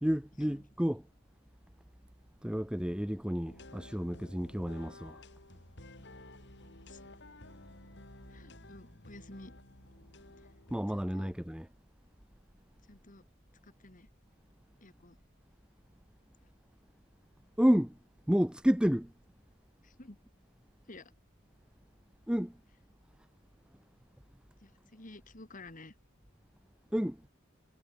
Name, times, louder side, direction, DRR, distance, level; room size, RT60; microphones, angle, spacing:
voice 1, 0.0-1.1 2.4-5.2 10.7-11.7 17.6-18.0 18.3-19.1 22.3-22.5 26.9-27.2, equal, 5° right, 0.6 m, -30 dB
sound 1, 3.5-10.8, left 2 dB, 55° left, 4.5 m, -53 dB
voice 2, 8.3-9.5 10.4-10.5 10.9-11.3 12.9-13.2 13.6-14.1 14.8-15.2 19.8-20.2 20.9-21.1 24.6-25.9, left 2 dB, 35° left, 2.2 m, -52 dB
head